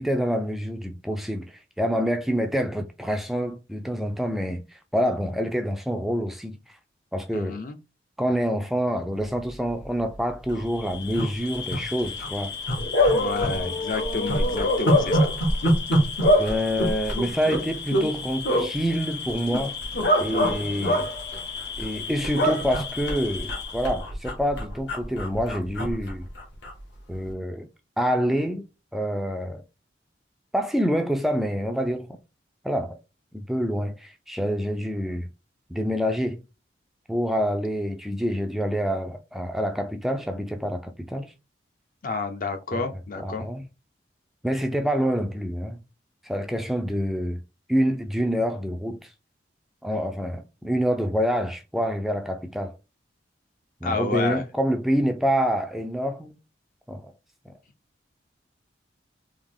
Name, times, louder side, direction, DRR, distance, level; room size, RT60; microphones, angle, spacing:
voice 1, 0.0-4.6 4.9-6.6 7.1-7.6 8.2-12.5 13.4-13.7 16.4-19.8 20.2-21.1 21.8-26.2 27.1-27.7 28.0-28.6 28.9-29.6 30.5-32.2 32.6-33.0 33.3-35.3 35.7-36.4 37.1-41.3 42.7-42.8 43.2-43.6 44.4-45.8 46.2-47.4 47.7-49.1 49.8-52.7 53.8-56.3 56.9-57.1, equal, ahead, 0.3 m, -27 dB
voice 2, 7.3-7.8 13.1-15.3 42.0-43.5 53.8-54.4, left 4 dB, 45° left, 0.5 m, -30 dB
sound 1, 9.7-9.8 10.1-10.2 10.4-10.7 11.1-11.8 12.2-12.3 12.7-13.6 13.9-18.1 18.4-18.7 19.3-20.1 20.4-20.5 20.8-22.0 22.2-26.8 27.1-27.3, right 1 dB, 80° left, 1.4 m, -27 dB
Bark / Cricket, 10.7-24.0, left 2 dB, 65° left, 1.4 m, -27 dB
3.5 x 2.8 x 3.7 m
head